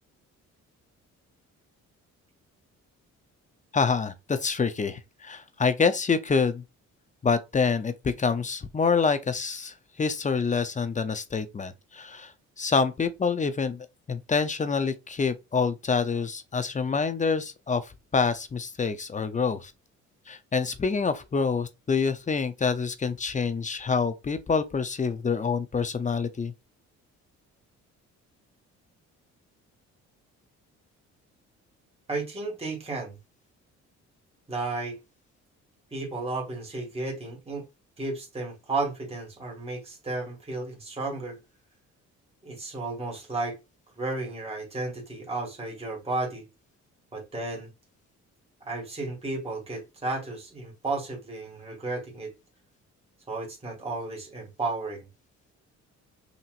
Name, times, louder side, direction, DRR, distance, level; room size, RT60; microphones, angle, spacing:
voice 1, 3.7-6.6 7.2-12.3 12.6-19.7 20.3-26.5, left 5 dB, 25° left, 0.6 m, -27 dB
voice 2, 32.1-33.2 34.5-35.0 35.9-37.6 38.0-41.4 42.4-43.6 44.0-46.5 47.1-47.7 48.7-52.3 53.3-55.1, right 3 dB, 20° right, 2.1 m, -33 dB
5.7 x 2.9 x 2.5 m
cardioid pair, 90°, 30 cm